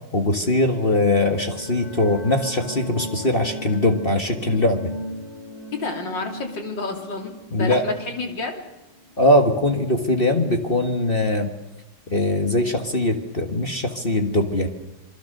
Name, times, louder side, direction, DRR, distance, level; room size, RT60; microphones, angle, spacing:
voice 1, 0.1-4.9 7.5-7.9 9.2-11.5 12.1-14.7, left 1 dB, 30° left, 4 dB, 1.7 m, -21 dB
sound 1, 0.6-9.1, equal, 55° left, 5.5 m, -37 dB
voice 2, 5.7-8.6, left 3 dB, 80° left, 3 dB, 3.7 m, -30 dB
27.0 x 23.5 x 6.6 m, 1.0 s
omnidirectional pair, 2.0 m